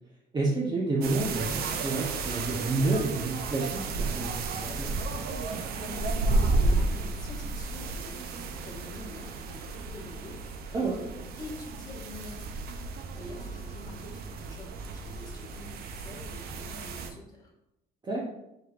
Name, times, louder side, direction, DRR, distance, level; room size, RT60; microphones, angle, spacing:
voice 1, 0.3-4.9 10.7-11.0 18.0-18.2, right 2 dB, 25° right, -4 dB, 0.7 m, -29 dB
sound 1, 1.0-17.1, right 3 dB, 65° right, 0.5 m, -32 dB
voice 2, 5.7-17.5, left 2 dB, 25° left, -4 dB, 1.3 m, -46 dB
4.7 x 3.2 x 2.4 m, 0.89 s
cardioid pair, 110°, 17 cm